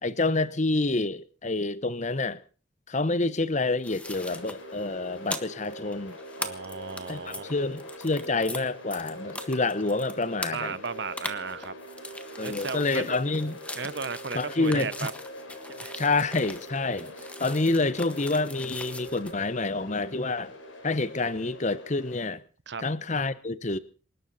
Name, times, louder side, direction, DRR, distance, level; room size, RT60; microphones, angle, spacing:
voice 1, 0.0-2.4 2.9-6.2 7.1-10.8 12.4-13.6 14.3-14.9 16.0-17.1 17.4-20.5 20.8-22.4 22.8-23.8, left 3 dB, 35° left, 0.9 m, -28 dB
sound 1, 3.8-8.6 8.9-19.3, left 2 dB, 5° left, 1.4 m, -40 dB
sound 2, 4.0-22.3, equal, 80° left, 5.1 m, -43 dB
voice 2, 6.4-7.6 10.5-11.7 12.4-13.2 13.7-15.1 15.7-15.9 22.7-22.8, right 5 dB, 60° right, 0.9 m, -35 dB
27.5 x 12.5 x 4.1 m
head